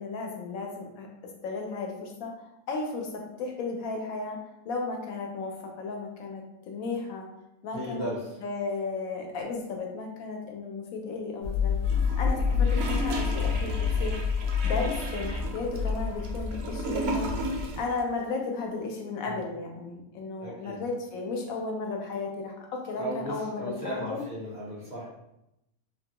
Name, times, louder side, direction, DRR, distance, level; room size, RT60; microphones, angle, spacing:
voice 1, 0.0-7.3 7.6-8.1 8.4-11.8 12.2-14.2 14.6-17.3 17.7-24.2, left 3 dB, 75° left, 2 dB, 1.0 m, -34 dB
voice 2, 7.7-8.4 19.2-19.4 20.4-20.8 23.0-25.1, equal, 40° left, -7 dB, 0.6 m, -36 dB
sound 1, 11.4-17.8, left 5 dB, 85° right, 1.2 m, -28 dB
Gurgling / Toilet flush, 11.8-17.9 18.2-18.3, right 2 dB, 65° right, 0.6 m, -35 dB
3.3 x 2.2 x 2.8 m, 0.86 s
omnidirectional pair, 1.5 m